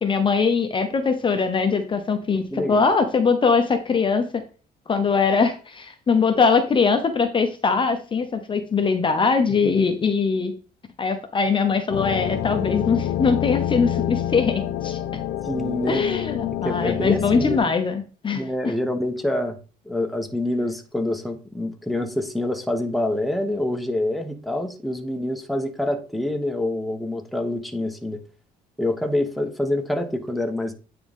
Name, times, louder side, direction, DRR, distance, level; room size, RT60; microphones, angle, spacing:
voice 1, 0.0-4.2 4.9-10.5 11.0-15.0 15.9-18.7, left 5 dB, 30° left, 0.9 m, -21 dB
voice 2, 2.5-2.8 9.6-9.8 15.5-16.0 16.6-17.7 18.3-19.6 19.9-28.2 28.8-30.7, left 1 dB, ahead, 1.0 m, -26 dB
sound 1, 11.9-17.6, left 11 dB, 75° left, 0.8 m, -27 dB
9.2 x 3.8 x 3.6 m
cardioid pair, 110°, 17 cm